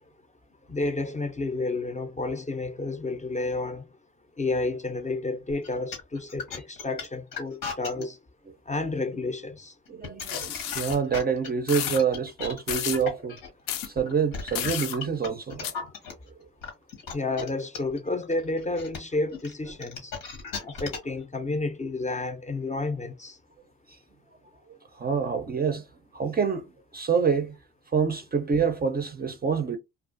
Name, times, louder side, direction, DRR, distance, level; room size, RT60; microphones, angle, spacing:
voice 1, 0.7-3.9 4.4-8.2 8.7-9.7 17.1-20.1 20.6-23.4, left 3 dB, 20° left, 0.5 m, -30 dB
sound 1, 5.5-8.0 9.9-16.1 16.6-21.2, left 5 dB, 90° left, 1.0 m, -36 dB
voice 2, 9.9-13.4 13.8-15.8 16.4-16.5 24.7-25.9 26.1-27.6 27.9-29.8, right 6 dB, 30° right, 0.4 m, -27 dB
sound 2, 10.2-11.0 11.7-12.0 12.7-13.0 13.7-13.9 14.5-15.0 15.6-15.7, left 10 dB, 70° left, 0.5 m, -32 dB
2.4 x 2.3 x 2.5 m
supercardioid pair, 55°, 35 cm